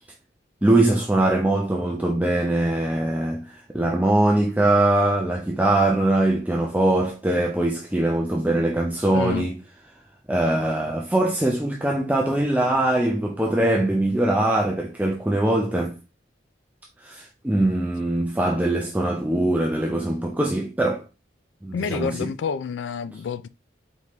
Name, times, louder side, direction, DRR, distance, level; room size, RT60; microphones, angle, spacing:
voice 1, 0.6-9.6 10.3-16.0 17.0-21.0 21.6-22.3, right 1 dB, 10° right, 0.4 m, -22 dB
voice 2, 9.1-9.5 21.7-23.5, left 6 dB, 85° left, 0.3 m, -28 dB
4.2 x 3.5 x 3.0 m
head